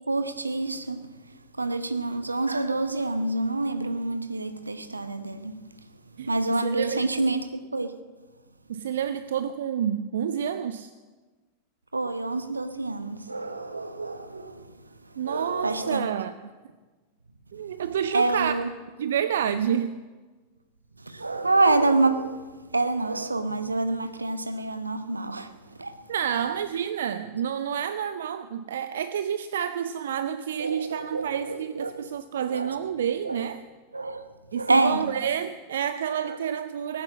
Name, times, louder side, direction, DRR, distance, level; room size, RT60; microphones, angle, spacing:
voice 1, 0.1-1.1 1.6-5.6 6.2-8.0 11.9-14.7 15.2-16.1 18.1-18.7 21.0-25.5 25.8-25.9 30.6-32.1 32.5-32.8 33.2-33.4 33.9-35.1 36.3-36.4, right 2 dB, 80° right, 1.0 m, -27 dB
voice 2, 6.2-7.1 8.7-10.9 15.2-16.3 17.5-18.5 19.0-20.0 26.1-33.6 34.5-37.0, right 9 dB, 60° right, 0.5 m, -29 dB
18.5 x 10.0 x 7.5 m
figure-of-eight pair, 90°, 0 cm